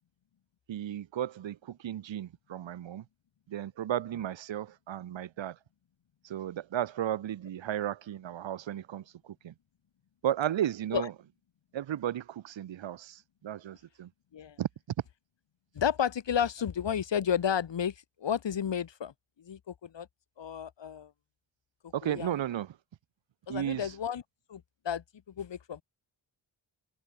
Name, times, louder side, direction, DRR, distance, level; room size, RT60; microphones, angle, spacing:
voice 1, 0.7-3.0 3.5-5.6 6.2-9.5 10.2-11.1 11.7-14.1 14.6-14.7 21.9-22.8 23.5-23.9, right 11 dB, 70° right, 1.3 m, -34 dB
voice 2, 15.8-17.9 18.2-19.1 19.5-20.1 20.4-21.1 22.0-22.3 23.5-24.2 24.5-25.0 25.4-25.8, left 8 dB, 65° left, 3.5 m, -31 dB
cardioid pair, 90°, 47 cm